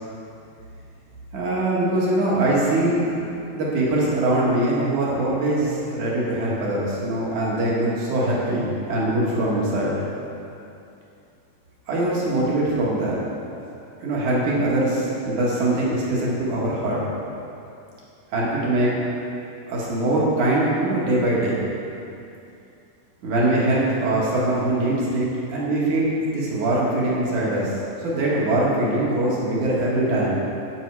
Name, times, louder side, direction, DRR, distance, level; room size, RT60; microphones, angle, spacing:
voice 1, 1.3-3.1 3.5-10.0 11.9-13.3 14.0-17.0 18.3-19.0 19.7-21.6 23.2-30.4, right 1 dB, 55° right, -5 dB, 2.7 m, -22 dB
10.5 x 7.4 x 4.8 m, 2.6 s
omnidirectional pair, 4.9 m